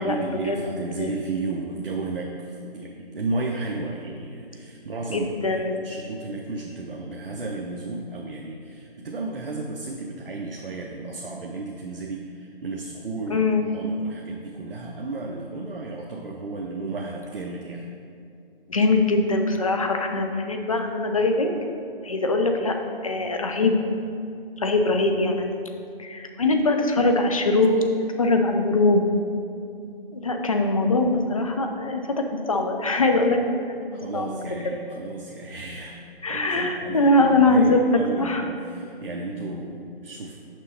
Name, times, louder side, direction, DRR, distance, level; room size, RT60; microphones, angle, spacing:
voice 1, 0.0-13.5 13.7-17.9 33.9-36.0 36.2-40.4, right 3 dB, 70° right, 0 dB, 0.7 m, -33 dB
voice 2, 5.1-5.9 13.3-13.7 18.7-21.5 22.0-22.8 23.0-23.8 24.6-25.6 26.0-27.8 28.2-29.0 30.1-34.4 36.2-37.8 38.2-38.5, left 2 dB, 35° left, 4 dB, 0.5 m, -22 dB
6.3 x 5.2 x 4.2 m, 2.5 s
figure-of-eight pair, 160°, 29 cm